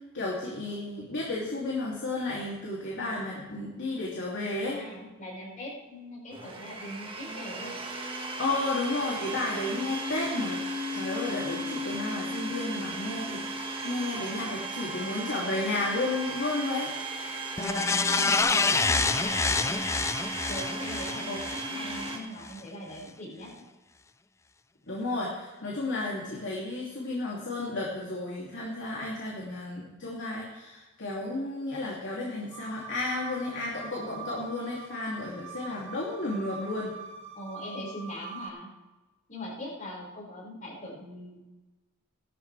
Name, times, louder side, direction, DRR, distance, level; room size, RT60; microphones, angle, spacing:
voice 1, 0.1-4.8 8.4-10.6 10.9-16.9 21.3-21.4 24.9-36.9, left 2 dB, 55° left, -4 dB, 2.8 m, -32 dB
voice 2, 4.5-7.7 17.5-19.8 20.5-23.5 37.3-38.7 39.3-41.4, left 1 dB, 40° left, -3 dB, 5.6 m, -41 dB
Domestic sounds home sounds, 6.3-22.2, right 2 dB, 25° right, 1.8 m, -35 dB
sound 1, 17.6-22.1 22.5-22.6, left 4 dB, 15° left, 0.3 m, -27 dB
sound 2, 32.5-38.5, right 4 dB, 60° right, 1.9 m, -44 dB
17.5 x 13.0 x 3.4 m, 1.1 s
head